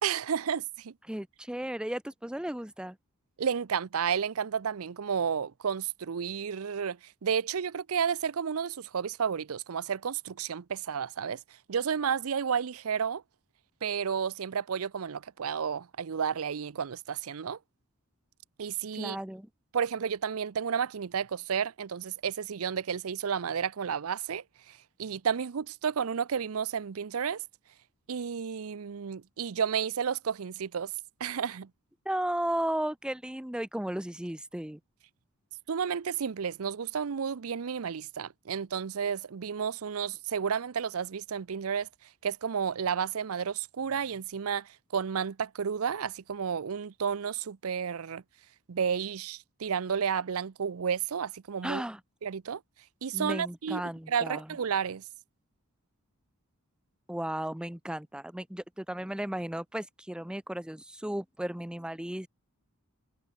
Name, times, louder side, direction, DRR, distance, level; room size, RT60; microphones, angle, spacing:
voice 1, 0.0-0.9 3.4-11.4 11.7-13.2 13.8-17.6 18.6-19.2 19.7-27.4 28.1-30.9 31.2-31.7 35.7-41.9 42.2-48.2 48.7-51.8 52.2-52.6 53.0-53.8 54.1-55.0, right 7 dB, 70° right, 0.5 m, -32 dB
voice 2, 1.1-3.0 18.9-19.5 32.1-34.8 51.6-52.0 53.1-54.6 57.1-62.3, right 1 dB, 5° right, 0.6 m, -35 dB
head